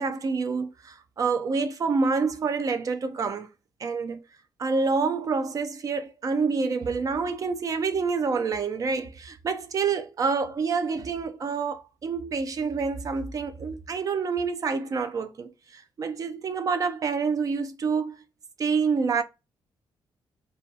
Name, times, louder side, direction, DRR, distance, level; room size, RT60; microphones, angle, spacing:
voice 1, 0.0-3.5 3.8-4.2 4.6-18.2 18.6-19.2, right 5 dB, 45° right, 0.4 m, -27 dB
2.2 x 2.2 x 2.7 m
cardioid pair, 95°, 8 cm